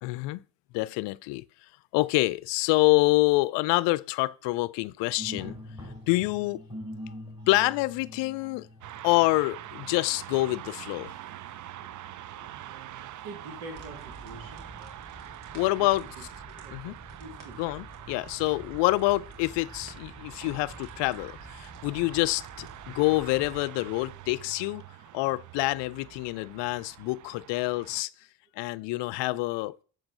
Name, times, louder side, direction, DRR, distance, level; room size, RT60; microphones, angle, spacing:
voice 1, 0.0-0.4 0.7-1.4 1.9-5.6 6.1-6.6 7.5-8.7 9.0-11.1 15.5-16.1 16.7-17.0 17.6-24.8 25.1-28.1 28.6-29.8, left 21 dB, 70° left, 0.5 m, -26 dB
sound 1, 5.2-23.8, left 1 dB, 10° right, 4.7 m, -48 dB
sound 2, 8.8-28.0, right 13 dB, 45° right, 0.5 m, -45 dB
voice 2, 12.4-14.7 15.6-16.3 16.6-17.6, right 2 dB, 80° right, 2.8 m, -46 dB
sound 3, 13.7-23.6, right 2 dB, 60° right, 2.9 m, -48 dB
7.9 x 4.5 x 6.5 m
hypercardioid pair, 45°, 44 cm